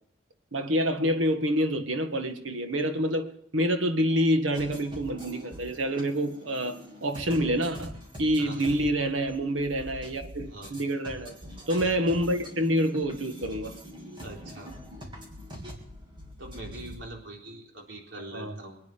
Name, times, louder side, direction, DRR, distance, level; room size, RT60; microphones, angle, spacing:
voice 1, 0.5-11.3 11.7-13.7 18.3-18.6, equal, 90° right, 1.8 m, -27 dB
sound 1, 4.5-17.0, equal, 25° right, 3.1 m, -44 dB
voice 2, 8.4-8.9 10.5-10.7 14.2-14.7 16.4-18.8, right 2 dB, 70° right, 3.9 m, -43 dB
24.5 x 9.7 x 5.2 m
head